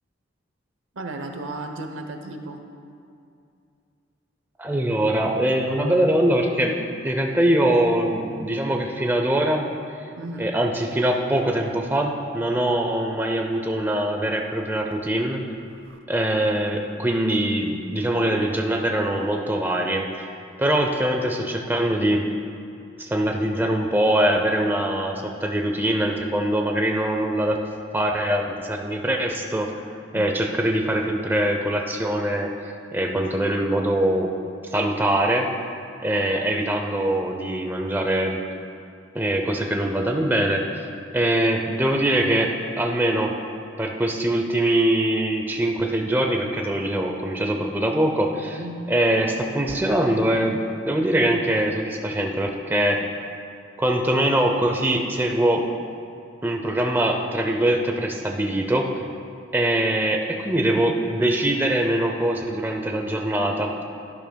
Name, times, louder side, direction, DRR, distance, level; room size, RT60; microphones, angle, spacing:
voice 1, 0.9-2.6 10.2-10.6 15.7-16.0 30.1-30.3 48.6-48.9, right 2 dB, 80° right, 5 dB, 0.8 m, -34 dB
voice 2, 4.6-6.8 7.0-9.7 10.4-15.4 16.1-20.3 20.6-22.3 23.0-27.6 27.9-29.7 30.1-32.5 32.9-34.3 34.7-35.5 36.0-38.4 39.1-40.9 41.1-43.3 43.8-48.6 48.9-50.6 50.8-53.0 53.8-55.7 56.4-58.9 59.5-63.8, right 1 dB, 10° right, 2 dB, 0.5 m, -23 dB
12.0 x 10.5 x 2.2 m, 2.5 s
head